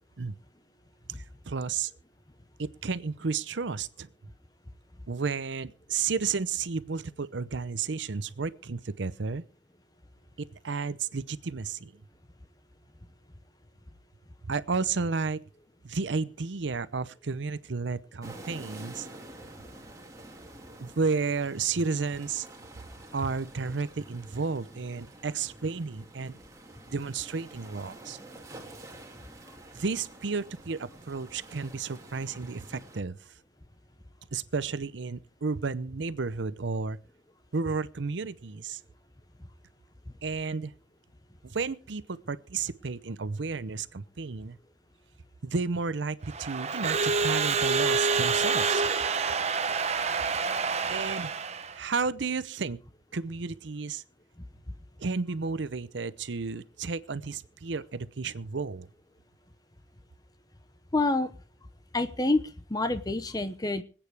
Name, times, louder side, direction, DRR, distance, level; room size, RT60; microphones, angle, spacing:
voice 1, 1.1-1.9 2.6-4.1 5.1-9.4 10.4-11.9 14.4-15.4 15.8-19.1 20.8-22.5 23.1-26.4 26.9-28.2 29.7-33.2 34.3-37.0 37.5-38.8 40.2-40.7 41.4-44.6 45.4-48.8 50.9-51.3 51.7-52.8 53.1-54.0 55.0-58.9, right 4 dB, 75° right, 16 dB, 0.7 m, -32 dB
sound 1, 18.2-33.0, right 1 dB, 20° right, 2.1 m, -48 dB
Crowd / Alarm, 46.3-51.8, right 4 dB, 35° right, 0.8 m, -27 dB
voice 2, 60.9-61.3 61.9-62.4 62.7-63.8, left 2 dB, 20° left, 11 dB, 0.9 m, -27 dB
25.5 x 8.9 x 3.4 m, 0.36 s
head